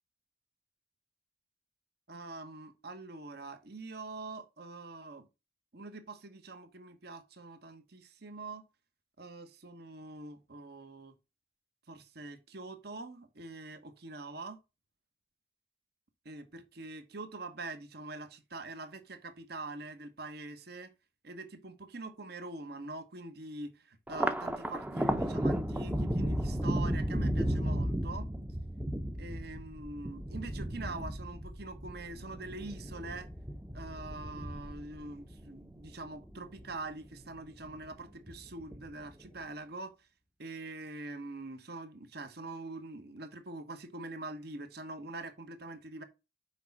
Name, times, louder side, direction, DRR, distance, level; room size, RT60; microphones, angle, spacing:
voice 1, 2.1-5.3 5.7-8.6 9.2-11.1 11.9-14.6 16.2-20.9 21.2-28.3 29.2-33.3 33.7-39.9 40.4-46.0, right 2 dB, 60° right, 1.2 m, -44 dB
Thunder, 24.1-36.7 37.1-37.9 38.3-39.1, right 1 dB, 10° right, 0.6 m, -34 dB
6.4 x 5.3 x 5.9 m
head